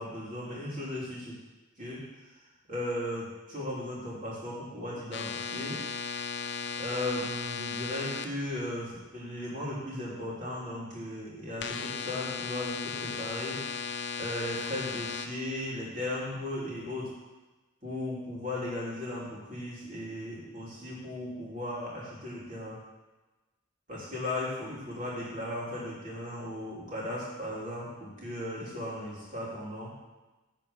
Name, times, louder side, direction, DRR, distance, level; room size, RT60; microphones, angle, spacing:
voice 1, 0.0-1.4 1.8-2.0 2.7-5.8 6.8-13.6 14.2-17.1 17.8-22.8 23.9-29.9, left 1 dB, 40° right, -6 dB, 3.1 m, -36 dB
sound 1, 5.1-8.3 11.6-15.3, left 5 dB, 65° left, 0.6 m, -36 dB
9.1 x 4.5 x 7.0 m, 1.1 s
head